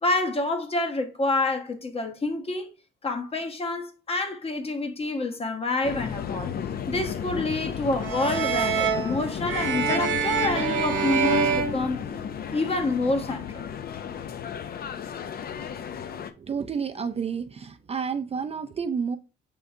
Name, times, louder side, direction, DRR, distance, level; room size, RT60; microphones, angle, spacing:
voice 1, 0.0-2.7 3.0-6.5 6.9-12.1 12.4-13.6, left 2 dB, 30° left, 0.9 m, -28 dB
sound 1, 5.8-16.3, left 8 dB, 50° left, 0.5 m, -34 dB
sound 2, 8.0-12.6, right 6 dB, 65° right, 1.1 m, -26 dB
voice 2, 16.4-19.2, right 6 dB, 30° right, 0.4 m, -30 dB
5.7 x 3.6 x 2.6 m
cardioid pair, 90°, 20 cm